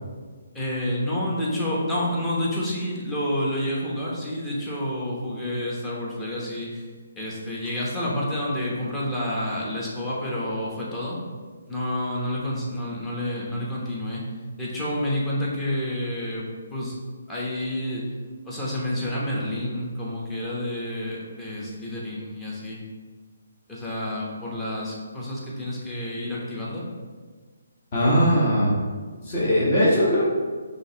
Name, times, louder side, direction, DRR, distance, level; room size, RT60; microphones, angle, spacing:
voice 1, 0.5-6.9 7.2-11.2 11.7-14.2 14.6-17.0 17.3-18.1 18.4-22.8 23.7-26.8, left 1 dB, 10° left, -6 dB, 0.9 m, -29 dB
voice 2, 27.9-28.7 29.2-30.2, equal, 35° left, -8 dB, 1.3 m, -20 dB
5.2 x 3.3 x 2.9 m, 1.5 s
hypercardioid pair, 160°, 0 cm